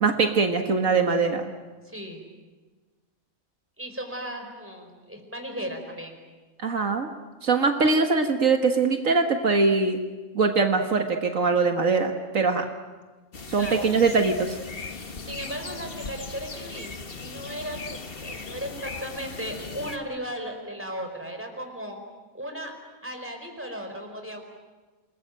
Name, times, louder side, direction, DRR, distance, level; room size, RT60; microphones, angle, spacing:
voice 1, 0.0-1.5 6.6-7.1 7.4-10.0 10.3-12.6 13.5-14.6, right 4 dB, 70° right, 4 dB, 2.0 m, -22 dB
voice 2, 1.8-2.2 3.8-6.2 13.5-13.9 15.2-22.0 22.3-24.4, equal, 10° right, 4 dB, 4.7 m, -36 dB
sound 1, 13.3-20.0, left 4 dB, 45° left, 1.7 m, -38 dB
28.5 x 21.0 x 9.2 m, 1.3 s
omnidirectional pair, 1.5 m